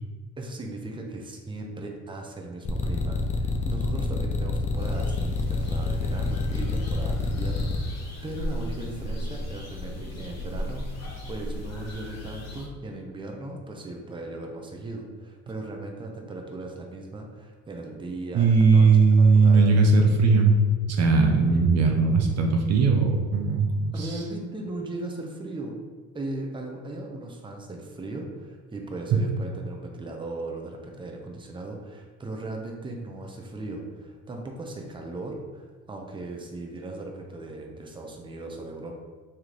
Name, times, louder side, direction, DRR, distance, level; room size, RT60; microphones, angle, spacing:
voice 1, 0.4-18.9 19.2-19.7 23.9-25.8 26.1-39.0, right 2 dB, 15° right, 1 dB, 0.6 m, -37 dB
sound 1, 2.7-7.8, left 3 dB, 25° left, 0.5 m, -27 dB
sound 2, 4.8-12.7, left 1 dB, 55° left, 1.1 m, -36 dB
voice 2, 18.3-20.5 20.9-24.2 29.1-29.2, right 4 dB, 55° right, 2 dB, 0.6 m, -19 dB
3.2 x 2.8 x 3.8 m, 1.4 s
supercardioid pair, 75°, 31 cm